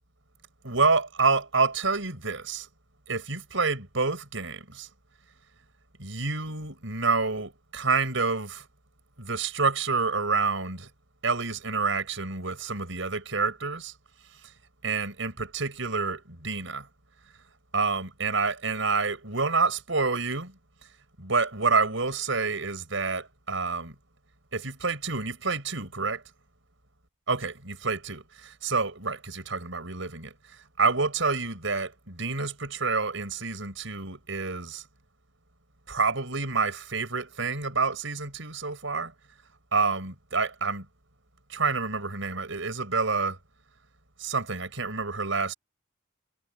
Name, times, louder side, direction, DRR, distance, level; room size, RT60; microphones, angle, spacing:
voice 1, 0.6-2.7 3.1-4.9 6.0-8.7 9.2-10.9 11.2-13.9 14.8-16.9 17.7-20.6 21.2-23.9 24.5-26.2 27.3-30.3 30.8-34.8 35.9-39.1 39.7-40.9 41.5-43.4 44.2-45.5, right 4 dB, 70° right, 6.1 m, -28 dB
head